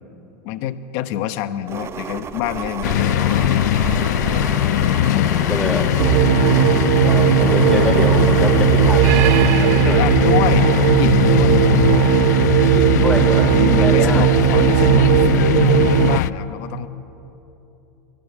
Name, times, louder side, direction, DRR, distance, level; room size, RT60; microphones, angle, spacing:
voice 1, 0.4-3.8 5.1-6.0 9.8-12.6 13.2-13.3 13.5-15.1 15.9-16.9, left 11 dB, 60° left, 11 dB, 1.1 m, -27 dB
sound 1, 1.7-9.5, right 7 dB, 30° right, 1.0 m, -31 dB
sound 2, 2.8-16.3, left 13 dB, 80° left, 0.5 m, -20 dB
voice 2, 4.9-5.9 6.2-6.3 7.0-9.0 9.4-10.0 12.7-14.3, left 1 dB, 5° left, 3 dB, 3.5 m, -25 dB
sound 3, 6.0-16.2, right 14 dB, 65° right, 0.8 m, -16 dB
24.5 x 17.5 x 7.2 m, 3.0 s
supercardioid pair, 115°, 9 cm